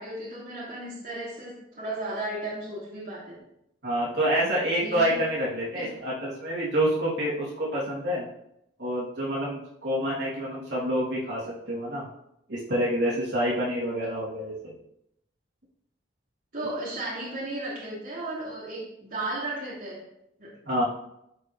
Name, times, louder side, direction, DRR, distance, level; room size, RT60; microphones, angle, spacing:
voice 1, 0.0-3.4 4.7-5.1 5.7-5.9 16.5-20.0 20.4-20.5, right 2 dB, 45° right, -8 dB, 2.9 m, -35 dB
voice 2, 3.8-8.3 8.8-12.0 12.5-14.7 20.6-20.8, equal, 60° right, -7 dB, 3.1 m, -27 dB
14.5 x 5.0 x 3.3 m, 0.80 s
head